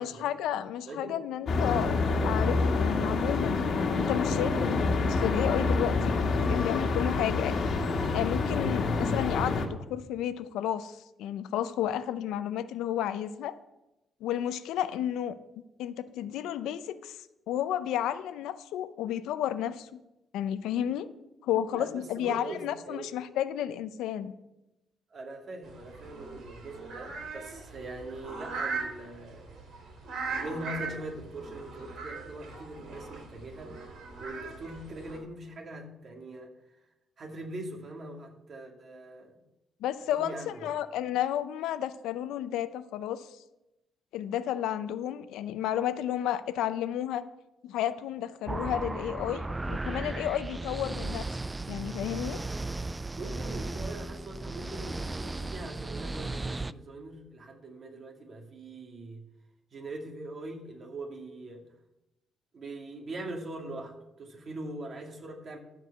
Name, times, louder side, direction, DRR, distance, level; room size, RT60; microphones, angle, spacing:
voice 1, 0.0-2.0 2.2-3.6 4.0-7.7 8.1-13.6 14.2-15.3 15.8-17.2 17.5-20.0 20.3-21.1 21.4-24.3 39.8-43.3 44.1-47.2 47.6-51.3 51.7-52.4, left 11 dB, 90° left, 13 dB, 0.6 m, -32 dB
voice 2, 0.9-1.2 21.7-23.1 25.1-29.6 30.3-33.9 34.2-36.5 37.2-39.4 40.1-40.8 50.5-50.7 53.1-59.2 59.7-61.7 62.5-65.6, right 2 dB, 50° right, 1 dB, 2.3 m, -42 dB
sound 1, 1.5-9.7, left 3 dB, 55° left, 1.6 m, -27 dB
sound 2, 25.6-35.2, right 4 dB, 70° right, 3.1 m, -40 dB
sound 3, 48.5-56.7, right 2 dB, 15° right, 0.3 m, -35 dB
13.5 x 4.7 x 6.7 m, 0.93 s
cardioid pair, 90°, 0 cm